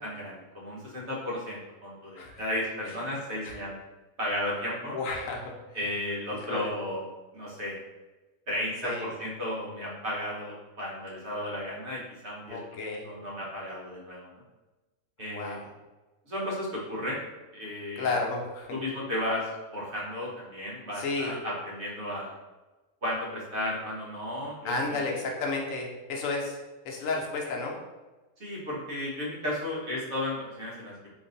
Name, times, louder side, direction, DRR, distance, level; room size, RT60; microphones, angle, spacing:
voice 1, 0.0-3.8 4.2-5.0 5.7-7.0 7.3-7.8 8.5-12.6 12.8-14.3 15.2-15.7 16.3-17.2 17.5-18.1 18.7-22.3 23.0-25.1 28.4-30.9, left 1 dB, 55° right, -5 dB, 1.3 m, -34 dB
voice 2, 4.9-5.5 6.4-6.7 8.8-9.1 12.5-13.1 15.2-15.6 18.0-18.7 21.0-21.4 24.6-26.6 26.8-27.8, left 3 dB, 75° left, 0 dB, 1.0 m, -32 dB
3.1 x 2.6 x 3.9 m, 1.1 s
omnidirectional pair, 1.4 m